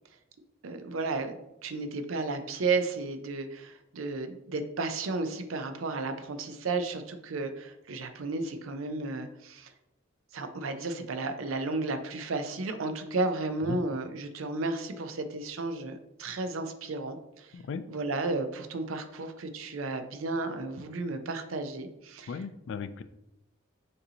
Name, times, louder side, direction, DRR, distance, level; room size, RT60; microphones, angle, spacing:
voice 1, 0.6-9.7 10.3-17.5 17.9-22.3, right 3 dB, 80° right, 8 dB, 0.5 m, -33 dB
voice 2, 17.5-17.8 22.3-23.0, left 5 dB, 65° left, 12 dB, 0.3 m, -36 dB
6.5 x 2.7 x 2.8 m, 0.89 s
head